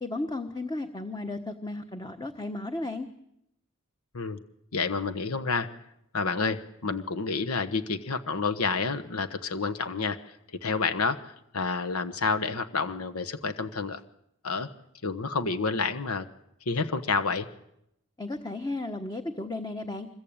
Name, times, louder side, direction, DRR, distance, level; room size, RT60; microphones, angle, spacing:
voice 1, 0.0-3.1 18.2-20.1, left 2 dB, 20° left, 7 dB, 1.2 m, -34 dB
voice 2, 4.7-5.7 6.1-10.4 10.6-14.0 14.4-14.7 15.0-16.2 16.7-17.5, left 4 dB, 75° left, 9 dB, 1.3 m, -29 dB
25.5 x 22.0 x 8.9 m, 0.80 s
head